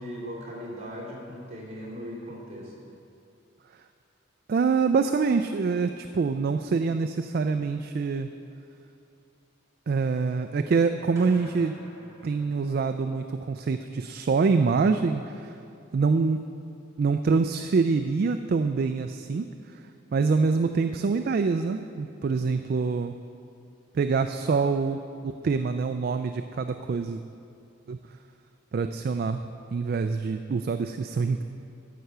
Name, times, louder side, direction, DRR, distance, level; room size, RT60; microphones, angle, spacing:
voice 1, 0.0-2.7, equal, 35° right, -4 dB, 2.7 m, -38 dB
voice 2, 4.5-8.3 9.9-11.8 12.2-15.6 15.9-16.4 17.0-19.5 19.7-19.8 20.1-23.1 23.9-27.2 27.9-28.0 28.7-29.4 29.7-31.4, right 4 dB, 50° right, 8 dB, 0.3 m, -25 dB
sound 1, 11.2-13.3, right 1 dB, 15° right, 2.3 m, -47 dB
12.5 x 5.7 x 6.6 m, 2.6 s
head